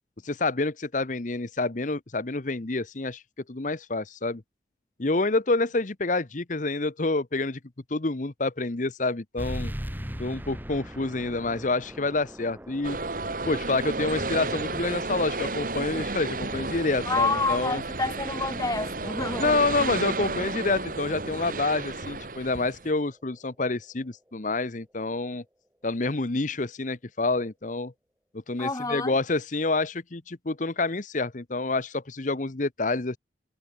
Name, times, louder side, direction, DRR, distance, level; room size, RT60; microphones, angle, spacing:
voice 1, 0.2-3.2 3.5-4.4 5.0-7.6 7.9-9.7 10.2-13.0 13.5-17.8 19.4-25.4 25.8-27.9 28.5-33.2, left 3 dB, 45° left, 1.0 m, -28 dB
sound 1, 9.4-24.5, equal, 10° right, 3.7 m, -43 dB
sound 2, 12.8-22.9, right 3 dB, 50° right, 2.5 m, -32 dB
voice 2, 17.0-19.9 28.6-29.1, left 3 dB, 20° left, 1.3 m, -29 dB
head